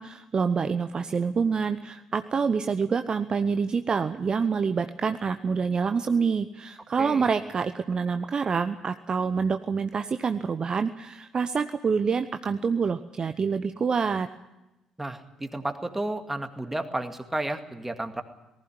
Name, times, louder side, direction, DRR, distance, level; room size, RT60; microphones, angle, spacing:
voice 1, 0.0-14.3, right 5 dB, 35° right, 10 dB, 0.8 m, -27 dB
voice 2, 15.0-18.2, right 1 dB, 10° right, 7 dB, 2.1 m, -32 dB
19.0 x 15.0 x 9.6 m, 0.96 s
figure-of-eight pair, 45°, 2 cm